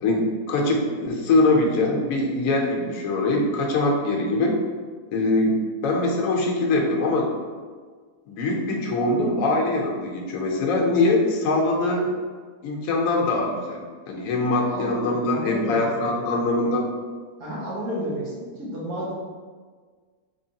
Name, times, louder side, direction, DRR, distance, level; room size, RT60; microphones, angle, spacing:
voice 1, 0.0-4.5 5.1-7.3 8.3-12.1 12.6-16.9, left 2 dB, 70° left, 0 dB, 1.0 m, -23 dB
voice 2, 14.6-16.4 17.4-19.1, equal, 70° right, -7 dB, 1.6 m, -31 dB
3.8 x 3.1 x 2.7 m, 1.5 s
omnidirectional pair, 1.7 m